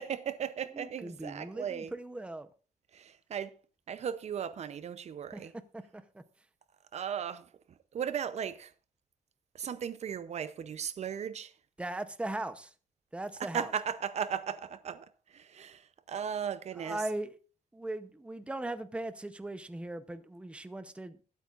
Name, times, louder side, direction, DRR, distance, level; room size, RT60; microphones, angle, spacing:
voice 1, 0.0-1.9 2.9-3.5 3.9-5.5 6.9-7.5 7.9-8.7 9.5-11.5 13.4-17.0, right 8 dB, 55° right, 0.6 m, -36 dB
voice 2, 0.7-2.5 5.3-6.2 11.8-12.7 13.1-13.7 16.7-17.4 17.7-21.2, right 2 dB, 10° right, 0.7 m, -39 dB
21.0 x 8.3 x 2.5 m
wide cardioid pair, 150°, 13 cm